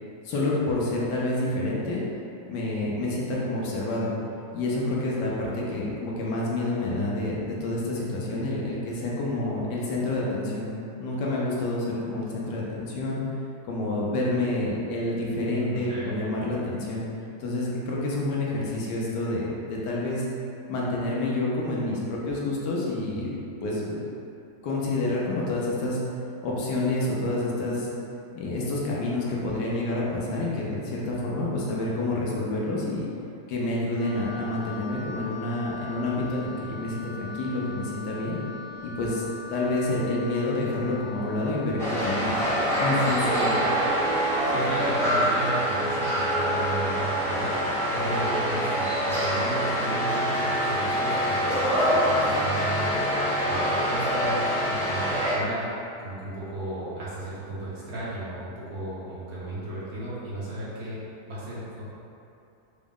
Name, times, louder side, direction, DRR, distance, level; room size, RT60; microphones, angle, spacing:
voice 1, 0.2-2.0 2.5-4.1 4.5-10.7 11.0-13.2 13.6-17.0 17.4-20.2 20.7-23.3 23.6-24.0 24.6-26.0 26.4-27.9 28.3-33.1 33.5-38.4 38.8-39.2 39.5-42.3 42.8-43.6, left 2 dB, 80° left, -4 dB, 1.3 m, -28 dB
voice 2, 15.5-16.2 44.5-47.5 47.9-55.7 56.0-61.0 61.3-61.9, right 2 dB, 65° right, -9 dB, 1.5 m, -35 dB
Wind instrument woodwind instrument, 34.0-44.6, left 4 dB, 60° left, 1.5 m, -41 dB
sound 1, 41.8-55.4, equal, 5° left, 0.4 m, -25 dB
4.8 x 2.1 x 3.5 m, 2.7 s
omnidirectional pair, 1.8 m